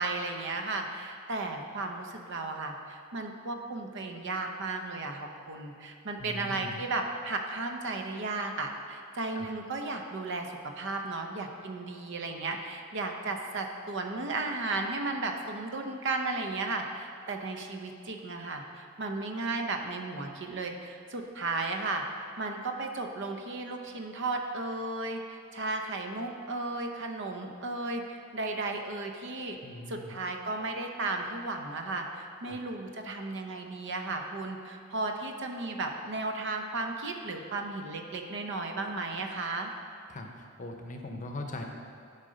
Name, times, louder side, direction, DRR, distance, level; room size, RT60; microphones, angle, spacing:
voice 1, 0.0-22.0 22.4-29.6 29.9-39.7, right 3 dB, 60° right, 4 dB, 0.7 m, -34 dB
voice 2, 6.2-6.8 9.4-9.5 29.6-30.1 32.5-32.6 40.1-40.3 40.6-41.6, left 2 dB, 35° left, 3 dB, 0.7 m, -40 dB
11.5 x 3.9 x 5.2 m, 2.5 s
head